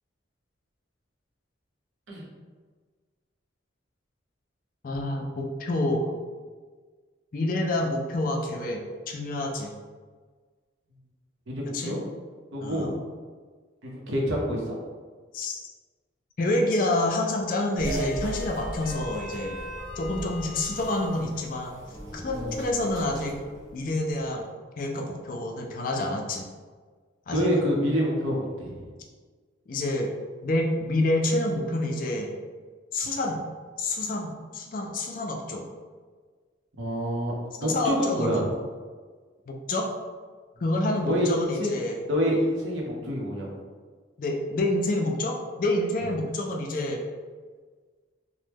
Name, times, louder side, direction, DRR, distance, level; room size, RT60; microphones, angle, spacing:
voice 1, 4.8-6.1 7.3-9.7 11.7-12.0 12.6-13.0 15.3-15.6 16.4-19.6 20.0-21.8 22.1-23.4 23.7-24.5 24.8-26.5 27.3-27.5 29.7-30.1 30.4-32.3 32.9-33.4 33.8-35.6 37.6-38.4 39.5-39.9 40.6-42.0 44.2-47.0, left 1 dB, 45° left, 2 dB, 0.3 m, -28 dB
voice 2, 11.5-12.0 12.5-12.9 13.8-14.8 22.3-22.6 27.3-28.9 36.8-37.3 37.6-38.5 41.0-41.8 42.1-43.5, equal, 80° right, -2 dB, 0.7 m, -27 dB
sound 1, 17.8-24.3, equal, 20° right, 0.7 m, -37 dB
2.9 x 2.1 x 3.4 m, 1.5 s
head